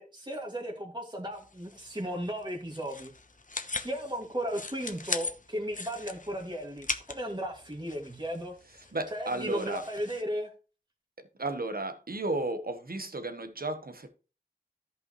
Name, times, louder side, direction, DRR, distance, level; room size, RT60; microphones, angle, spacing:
voice 1, 0.0-3.1 3.8-8.5 8.8-10.5, equal, 30° right, 2.2 m, -35 dB
sound 1, 1.3-10.2, left 3 dB, 55° left, 0.9 m, -40 dB
voice 2, 8.9-9.8 11.4-14.1, right 2 dB, 70° right, 1.1 m, -33 dB
14.0 x 5.4 x 3.1 m
wide cardioid pair, 40°, 16 cm